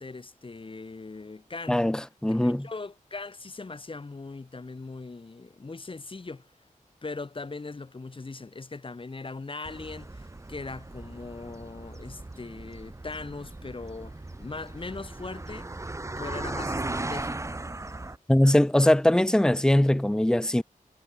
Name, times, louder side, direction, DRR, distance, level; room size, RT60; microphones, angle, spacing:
voice 1, 0.0-1.8 2.3-6.5 7.0-17.6, left 3 dB, 40° left, 1.7 m, -40 dB
voice 2, 1.7-2.7 18.3-20.6, left 1 dB, 5° left, 0.5 m, -21 dB
sound 1, 9.6-18.2, right 2 dB, 20° right, 1.0 m, -37 dB
wide cardioid pair, 110°, 14 cm